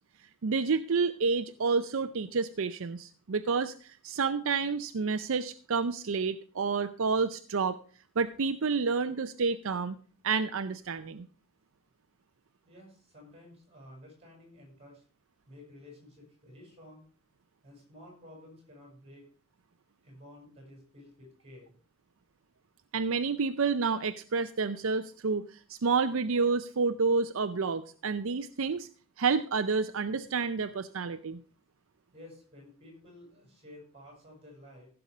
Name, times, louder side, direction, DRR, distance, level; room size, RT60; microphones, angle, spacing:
voice 1, 0.4-7.8 8.2-10.0 10.2-11.3 22.9-28.9 29.2-31.4, right 4 dB, 70° right, 10 dB, 0.5 m, -29 dB
voice 2, 12.7-15.0 15.5-17.1 17.6-19.3 20.0-21.8 32.1-34.9, left 1 dB, 25° right, 0 dB, 7.2 m, -52 dB
15.5 x 6.8 x 5.0 m, 0.41 s
head